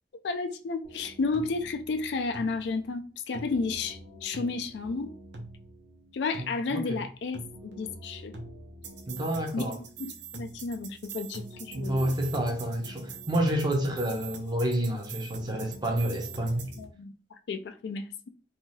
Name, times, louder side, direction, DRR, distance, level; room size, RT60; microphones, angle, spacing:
voice 1, 0.2-5.1 6.1-8.3 9.5-9.6 10.0-12.1 16.8-17.1 17.5-18.3, left 4 dB, 65° left, 0.4 m, -32 dB
church beats, 0.8-16.8, right 3 dB, 70° right, 0.6 m, -44 dB
voice 2, 6.4-7.0 9.1-9.8 11.7-16.7, right 1 dB, 25° right, 0.5 m, -29 dB
2.7 x 2.3 x 3.1 m
head